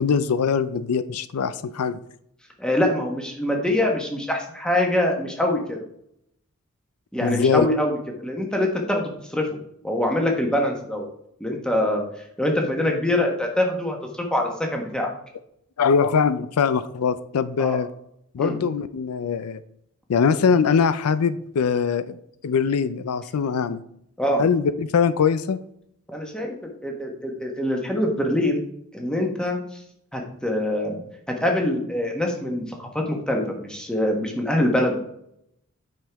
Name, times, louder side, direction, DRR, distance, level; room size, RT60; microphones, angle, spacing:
voice 1, 0.0-2.0 7.2-7.7 15.8-17.9 18.3-19.6 20.1-22.2 22.4-23.8 24.4-25.6, left 6 dB, 85° left, 14 dB, 0.4 m, -22 dB
voice 2, 2.6-5.8 7.1-8.0 8.2-9.5 9.8-11.1 11.4-12.0 12.4-14.0 14.3-15.1 17.6-17.8 18.4-18.6 24.2-24.4 26.1-26.5 26.8-28.6 28.9-29.6 30.1-31.0 31.4-35.0, left 1 dB, 5° left, 1 dB, 1.2 m, -24 dB
8.7 x 5.5 x 3.5 m, 0.73 s
head